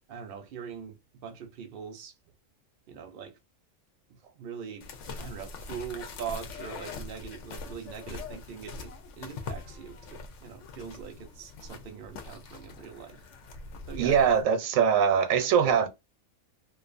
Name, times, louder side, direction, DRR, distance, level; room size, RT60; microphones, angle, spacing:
voice 1, 0.1-2.1 2.9-3.4 4.1-4.9 5.2-13.2 13.9-14.4, right 7 dB, 55° right, 0.7 m, -42 dB
sound 1, 4.8-14.4, left 4 dB, 70° left, 0.9 m, -42 dB
voice 2, 14.0-15.9, right 7 dB, 85° right, 1.0 m, -22 dB
2.5 x 2.4 x 2.4 m
omnidirectional pair, 1.4 m